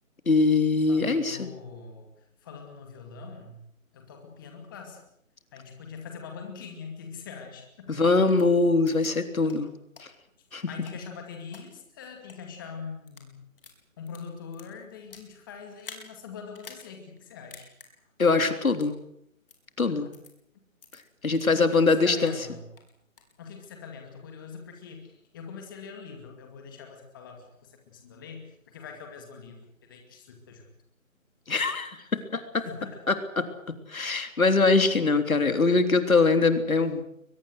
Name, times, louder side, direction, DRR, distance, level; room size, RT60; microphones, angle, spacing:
voice 1, 0.3-1.5 7.9-9.7 10.0-10.1 10.5-10.7 18.2-18.9 19.8-20.1 21.2-22.3 31.5-32.6 33.1-33.2 33.7-37.0, left 3 dB, 80° left, 9 dB, 3.5 m, -23 dB
voice 2, 0.9-2.1 2.4-3.6 3.9-5.0 5.5-7.9 10.7-13.4 14.0-17.7 21.5-22.7 23.4-30.7 32.6-33.0 34.0-34.2, left 5 dB, 15° left, 3 dB, 2.3 m, -43 dB
sound 1, 8.4-8.5 8.9-9.1 9.5-9.6 10.0-10.1 10.6-11.6 12.2-12.4 12.9-13.3 13.6-15.3 15.8-16.1 16.5-16.9 17.2-17.3 17.5-17.9 18.7-18.9 19.5-19.6 20.1-20.3 20.8-21.0 21.4-21.5 21.9-22.4 22.8-23.3, left 5 dB, 40° left, 4.7 m, -48 dB
22.5 x 21.0 x 8.0 m, 0.73 s
hypercardioid pair, 170°, 41 cm